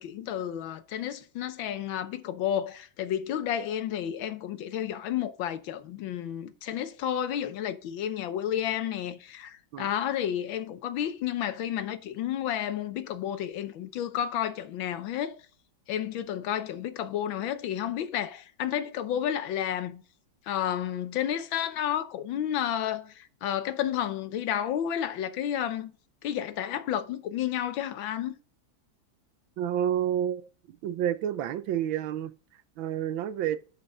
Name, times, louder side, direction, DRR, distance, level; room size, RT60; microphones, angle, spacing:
voice 1, 0.0-15.4 15.9-20.0 20.5-25.9 26.2-28.3, left 10 dB, 80° left, 1.6 m, -31 dB
voice 2, 29.6-32.3 32.8-33.6, right 10 dB, 80° right, 1.5 m, -29 dB
10.5 x 5.6 x 3.9 m
omnidirectional pair, 2.1 m